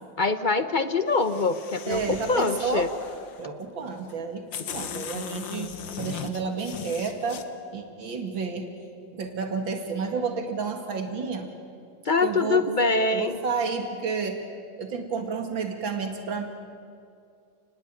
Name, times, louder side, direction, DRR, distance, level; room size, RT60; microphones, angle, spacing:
voice 1, 0.2-2.9 12.0-13.4, left 3 dB, 40° left, 10 dB, 0.7 m, -24 dB
sound 1, 1.1-3.4 4.1-4.2 4.5-7.4, left 8 dB, 80° left, 2.0 m, -38 dB
Gunshot gunfire, 1.9-3.9 4.2-4.3 5.0-5.2, right 1 dB, 40° right, 3.1 m, -47 dB
voice 2, 1.9-2.9 3.4-7.4 7.7-8.7 9.1-11.5 12.2-12.7 13.1-14.4 14.8-16.5, right 5 dB, 80° right, 5 dB, 2.9 m, -31 dB
29.0 x 20.0 x 9.0 m, 2.3 s
omnidirectional pair, 2.1 m